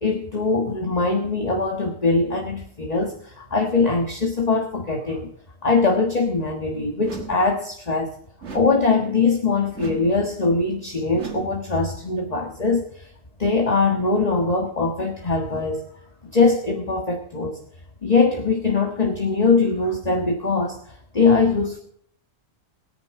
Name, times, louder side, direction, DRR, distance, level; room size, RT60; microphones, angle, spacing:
voice 1, 0.0-5.3 5.6-8.1 8.5-13.1 13.4-15.8 16.3-17.6 18.0-21.8, left 4 dB, 35° left, 2 dB, 1.6 m, -22 dB
sound 1, 7.0-7.6 8.4-9.0 9.7-10.3 11.1-11.7, right 7 dB, 85° right, 1.9 m, -36 dB
22.0 x 10.0 x 3.7 m, 0.65 s
omnidirectional pair, 1.1 m